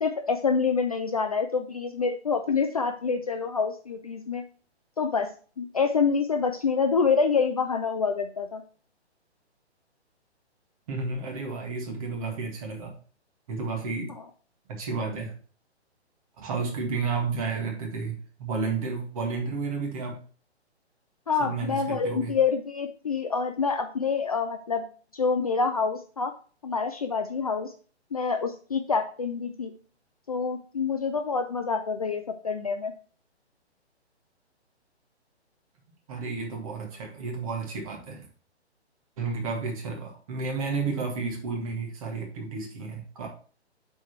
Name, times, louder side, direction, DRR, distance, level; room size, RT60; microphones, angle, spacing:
voice 1, 0.0-4.4 5.0-5.3 5.6-8.6 21.3-24.8 25.1-26.3 26.6-27.7 28.1-29.7 30.3-32.9, left 5 dB, 35° left, 6 dB, 0.5 m, -27 dB
voice 2, 10.9-12.9 13.5-14.1 14.7-15.3 16.4-20.2 21.4-22.3 36.1-38.3 39.2-43.3, right 4 dB, 30° right, 1 dB, 1.9 m, -32 dB
7.1 x 4.2 x 4.4 m, 0.41 s
figure-of-eight pair, 130°, 34 cm